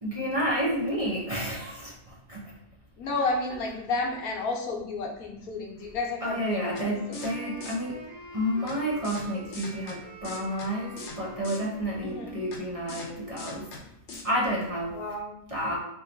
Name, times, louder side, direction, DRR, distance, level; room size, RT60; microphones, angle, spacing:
voice 1, 0.0-2.5 6.2-8.0 8.3-13.7 14.2-15.0 15.5-15.8, equal, 30° right, -5 dB, 0.8 m, -30 dB
voice 2, 3.0-7.2 12.0-12.4 14.9-15.4, left 3 dB, 85° left, 0 dB, 1.3 m, -32 dB
Wind instrument woodwind instrument, 6.1-14.0, right 4 dB, 65° right, 1.4 m, -45 dB
sound 1, 6.8-6.9 7.1-7.3 7.6-7.7 8.7-8.8 9.0-9.2 9.5-10.0 10.2-10.7 11.0-11.2 11.4-11.6 12.5-12.6 12.9-13.1 13.4-13.8 14.1-14.2, left 3 dB, 55° left, 1.1 m, -40 dB
3.6 x 3.2 x 3.9 m, 0.79 s
omnidirectional pair, 1.5 m